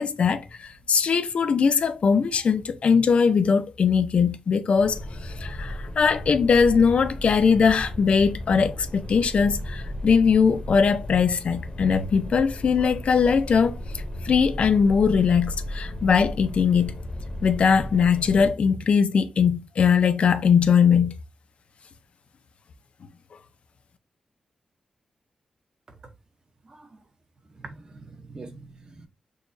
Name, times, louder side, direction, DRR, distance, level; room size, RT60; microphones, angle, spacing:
voice 1, 0.0-13.8 14.2-16.9 17.4-21.2, left 6 dB, 50° left, 0.5 m, -21 dB
sound 1, 4.8-18.5, left 1 dB, 25° left, 0.8 m, -35 dB
voice 2, 26.6-27.0 27.6-29.1, right 3 dB, 30° right, 0.7 m, -44 dB
6.4 x 2.3 x 2.6 m
wide cardioid pair, 175°, 3 cm